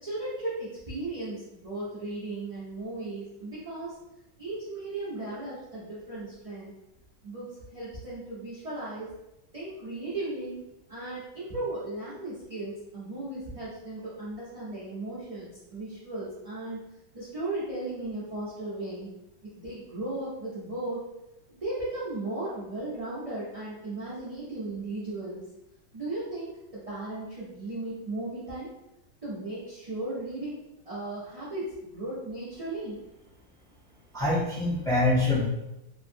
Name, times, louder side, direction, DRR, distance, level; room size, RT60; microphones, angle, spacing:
voice 1, 0.0-3.9 4.4-6.7 7.2-9.1 9.5-10.6 10.9-16.8 17.1-19.1 19.4-21.0 21.5-25.4 25.9-28.7 29.2-30.6 30.9-33.0, right 2 dB, 65° right, -10 dB, 0.3 m, -36 dB
voice 2, 34.1-35.5, left 2 dB, 5° left, -10 dB, 0.7 m, -25 dB
2.9 x 2.5 x 2.7 m, 0.91 s
omnidirectional pair, 1.8 m